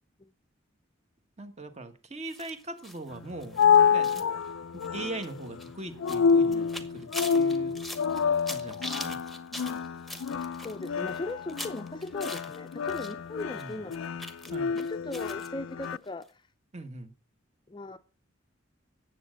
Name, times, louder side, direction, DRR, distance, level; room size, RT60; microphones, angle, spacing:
voice 1, 1.4-3.6 3.9-4.2 4.7-6.7 6.9-7.7 8.4-9.2 13.5-13.8 14.5-14.7 16.7-17.1, right 2 dB, 35° right, 1.4 m, -40 dB
sound 1, 2.3-13.1 13.4-15.5 15.8-15.9 16.2-16.3, left 1 dB, ahead, 1.1 m, -43 dB
sound 2, 3.1-16.0, left 6 dB, 90° left, 0.4 m, -28 dB
voice 2, 10.6-14.2 14.7-16.3 17.7-18.0, left 2 dB, 25° left, 0.5 m, -38 dB
9.8 x 7.6 x 6.3 m
head